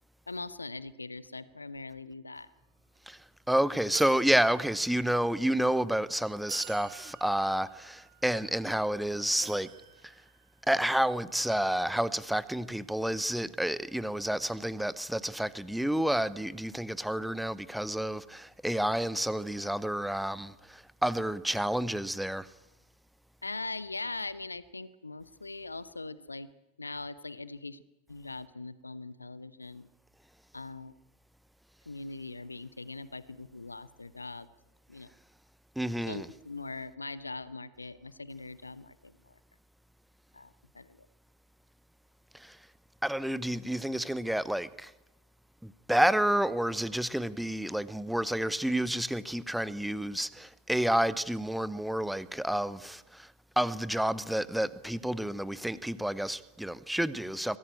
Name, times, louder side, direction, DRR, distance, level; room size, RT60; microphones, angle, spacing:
voice 1, 0.3-2.5 23.4-26.5 26.8-27.8 28.1-29.9 30.5-30.9 31.9-34.5 34.9-35.1 36.0-39.3 40.3-41.0, left 3 dB, 80° left, 0.9 m, -41 dB
sound 1, 2.6-2.7 2.9-3.2 3.9-5.4 6.0-6.1 6.5-8.9 9.4-11.0, right 12 dB, 45° right, 2.3 m, -48 dB
voice 2, 3.5-9.7 10.7-22.5 35.8-36.2 42.4-42.5 43.0-44.9 45.6-53.3 53.6-57.6, right 1 dB, ahead, 0.8 m, -30 dB
23.0 x 15.5 x 8.8 m
figure-of-eight pair, 90°, 0 cm